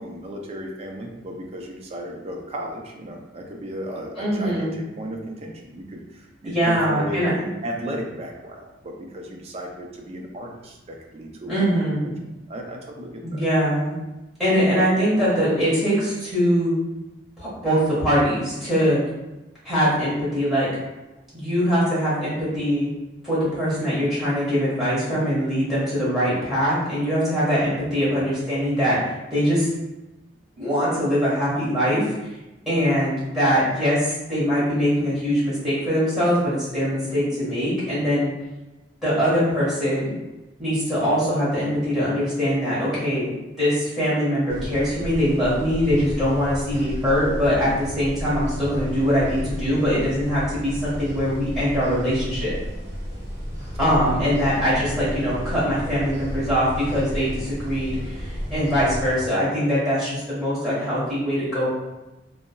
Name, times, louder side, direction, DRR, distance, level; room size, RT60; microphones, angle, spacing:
voice 1, 0.0-11.8 12.0-12.2 12.5-13.4 53.8-54.4, equal, 35° right, 1 dB, 0.4 m, -35 dB
voice 2, 4.2-4.8 6.4-7.4 11.5-12.1 13.2-13.9 14.4-16.7 17.4-19.0 19.6-20.7 21.3-22.9 23.2-29.0 29.3-29.7 30.6-32.3 32.6-38.3 39.0-40.1 40.6-43.3 43.6-52.5 53.8-61.7, equal, ahead, -11 dB, 1.4 m, -22 dB
sound 1, 44.5-59.1, equal, 20° right, 1.1 m, -32 dB
3.6 x 2.0 x 2.2 m, 1.0 s
head